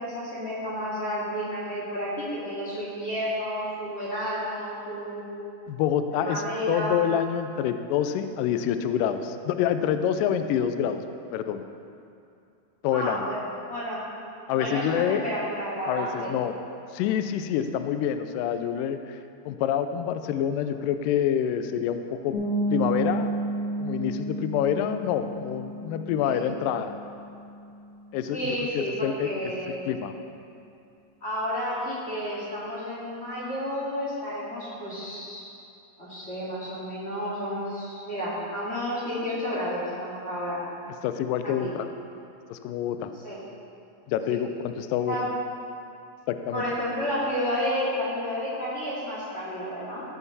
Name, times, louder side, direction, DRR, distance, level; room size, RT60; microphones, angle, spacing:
voice 1, 0.0-5.2 6.1-7.0 12.9-14.0 14.5-16.3 26.2-26.4 28.3-29.8 31.2-35.4 36.0-40.6 41.4-41.7 43.2-43.4 44.3-44.4 45.1-45.3 46.5-50.0, equal, 25° left, -9 dB, 2.2 m, -31 dB
voice 2, 5.7-11.0 11.3-11.6 12.8-13.3 14.5-15.2 15.8-16.6 16.9-19.2 19.5-22.4 22.7-23.3 23.8-26.9 28.1-30.1 41.0-41.9 42.5-43.1 44.1-45.2 46.3-46.6, left 9 dB, 90° left, 9 dB, 1.9 m, -27 dB
sound 1, 22.3-27.9, right 1 dB, 70° left, 4.1 m, -31 dB
16.0 x 5.8 x 4.1 m, 2.6 s
omnidirectional pair, 4.5 m